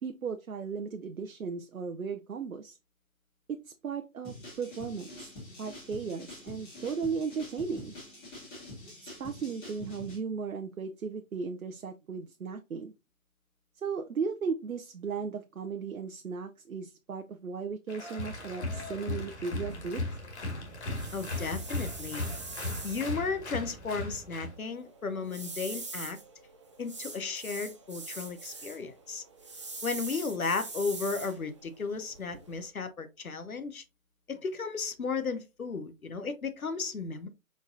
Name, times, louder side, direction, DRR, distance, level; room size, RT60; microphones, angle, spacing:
voice 1, 0.0-2.8 3.5-5.3 5.6-7.9 9.0-12.9 13.8-20.1, right 5 dB, 80° right, 0.7 m, -36 dB
sound 1, 4.2-10.2, left 1 dB, 10° left, 1.3 m, -46 dB
Applause, 17.9-24.6, left 2 dB, 55° left, 1.8 m, -37 dB
sound 2, 19.7-32.7, right 3 dB, 20° right, 0.6 m, -44 dB
voice 2, 21.1-22.2 22.8-26.2 26.8-29.2 29.8-33.8 34.3-37.3, left 4 dB, 85° left, 1.0 m, -34 dB
4.9 x 4.0 x 2.6 m
figure-of-eight pair, 150°, 42 cm